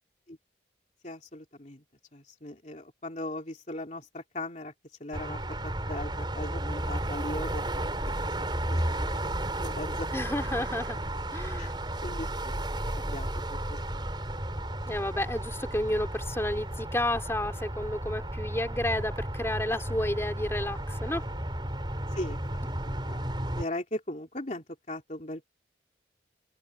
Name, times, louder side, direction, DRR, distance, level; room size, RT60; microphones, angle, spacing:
voice 1, 1.0-1.8 2.1-4.7 5.0-9.1 9.6-10.1 11.6-11.7 12.0-14.0 22.2-23.3 23.6-25.5, left 1 dB, 40° left, 3.1 m, -39 dB
sound 1, 5.1-23.6, right 1 dB, 25° right, 4.7 m, -33 dB
voice 2, 10.1-11.0 11.3-11.7 14.9-21.3, left 1 dB, 15° left, 3.4 m, -31 dB
head